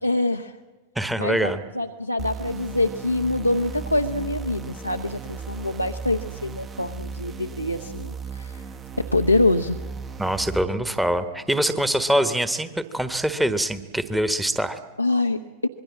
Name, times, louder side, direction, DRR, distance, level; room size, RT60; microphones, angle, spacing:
voice 1, 0.0-0.5 1.2-8.6 9.0-9.8 15.0-15.7, left 2 dB, 85° left, 3 dB, 0.8 m, -25 dB
voice 2, 0.9-1.6 10.2-12.7 12.9-14.8, right 1 dB, 5° right, 10 dB, 1.3 m, -24 dB
sound 1, 2.2-10.6, right 5 dB, 25° right, 1.1 m, -36 dB
26.0 x 22.0 x 7.5 m, 1.3 s
figure-of-eight pair, 90°, 0 cm